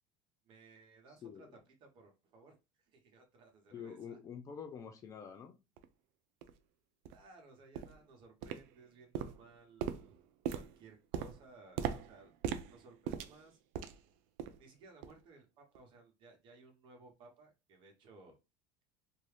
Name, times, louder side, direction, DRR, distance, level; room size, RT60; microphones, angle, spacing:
voice 1, 0.4-1.5 1.8-4.2 7.1-10.2 10.5-12.3 12.7-13.6 14.6-18.4, right 3 dB, 45° right, 1.1 m, -59 dB
voice 2, 1.2-1.5 3.7-5.6, left 7 dB, 30° left, 0.5 m, -47 dB
sound 1, 5.8-5.9 6.4-6.5 7.0-7.2 7.7-8.0 8.4-8.9 9.1-14.1 14.4-14.7 15.0-15.2 15.7-15.8, right 9 dB, 65° right, 0.4 m, -41 dB
2.7 x 2.3 x 3.3 m
cardioid pair, 140°, 11 cm